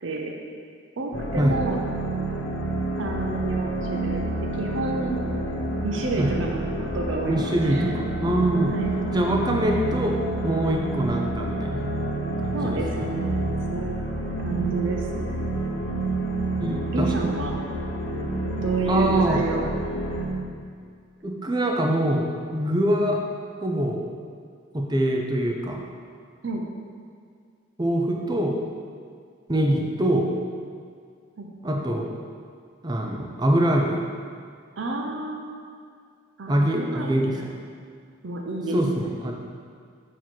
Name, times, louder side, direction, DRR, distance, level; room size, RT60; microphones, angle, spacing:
voice 1, 0.0-0.3 1.0-1.8 3.0-5.2 5.8-6.6 6.9-8.1 8.7-9.1 12.5-14.0 14.4-15.5 16.9-17.5 18.6-19.7 26.4-26.7 31.4-31.5 34.8-35.6 36.4-37.4 38.2-39.1, right 2 dB, 70° right, 0 dB, 0.6 m, -30 dB
sound 1, 1.1-20.3, right 2 dB, 85° left, 1.0 m, -28 dB
voice 2, 7.3-8.7 9.1-10.2 10.4-11.9 12.4-13.1 16.6-17.1 18.9-19.4 21.2-23.2 23.6-24.0 24.7-25.8 27.8-28.6 29.5-30.3 31.6-32.1 32.8-34.0 36.5-37.4 38.7-39.3, right 1 dB, 20° right, 0 dB, 0.6 m, -24 dB
6.9 x 3.0 x 6.0 m, 2.1 s
head